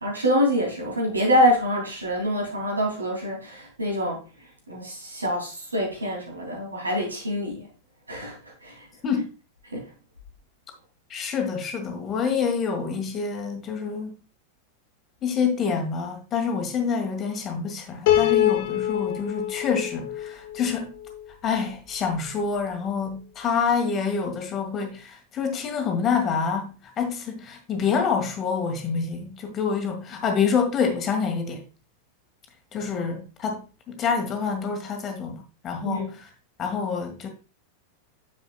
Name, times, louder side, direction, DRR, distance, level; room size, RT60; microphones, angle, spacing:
voice 1, 0.0-4.2 4.7-7.7 8.1-8.9 9.7-9.9 35.8-36.1, equal, 80° right, 2.9 m, -25 dB
voice 2, 11.1-14.2 15.2-20.9 21.4-31.6 32.7-33.6 33.9-36.3 36.6-37.3, left 6 dB, 30° left, 1.7 m, -27 dB
Piano, 18.1-21.3, left 11 dB, 50° left, 1.0 m, -25 dB
9.3 x 7.0 x 2.3 m
figure-of-eight pair, 90°, 0 cm